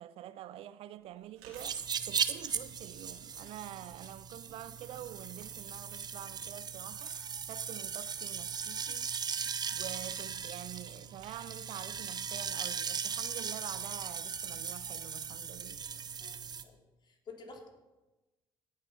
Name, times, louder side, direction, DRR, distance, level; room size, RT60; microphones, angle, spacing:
voice 1, 0.0-9.1 9.7-16.1, right 12 dB, 60° right, 0.5 m, -47 dB
Chewing mastication, 1.0-16.1, right 5 dB, 80° right, 2.6 m, -62 dB
sound 1, 1.6-16.6, right 7 dB, 40° right, 0.9 m, -38 dB
voice 2, 16.2-16.8 17.1-17.7, left 4 dB, 45° left, 3.4 m, -50 dB
17.5 x 6.6 x 5.4 m
hypercardioid pair, 55°, 11 cm